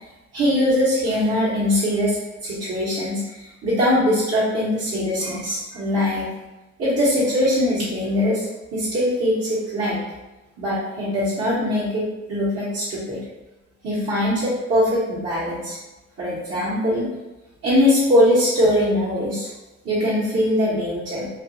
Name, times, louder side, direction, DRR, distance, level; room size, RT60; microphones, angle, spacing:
voice 1, 0.3-6.3 6.8-10.1 10.6-13.2 13.8-15.8 16.2-17.1 17.6-19.5 19.8-21.3, left 1 dB, 50° right, -10 dB, 1.1 m, -21 dB
2.8 x 2.6 x 2.6 m, 1.1 s
cardioid pair, 90°, 30 cm